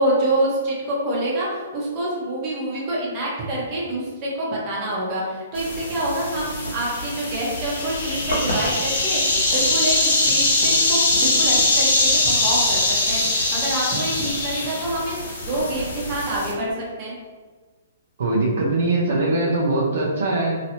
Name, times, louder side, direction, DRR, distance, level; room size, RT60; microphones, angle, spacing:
voice 1, 0.0-12.8 13.1-15.2 15.5-16.7 17.0-17.1, right 1 dB, 35° right, -5 dB, 1.1 m, -26 dB
sound 1, 5.6-16.5, left 2 dB, 85° left, 0.9 m, -22 dB
voice 2, 18.2-20.6, right 2 dB, 70° right, -4 dB, 0.8 m, -21 dB
3.0 x 2.8 x 2.8 m, 1.4 s
hypercardioid pair, 145°, 0 cm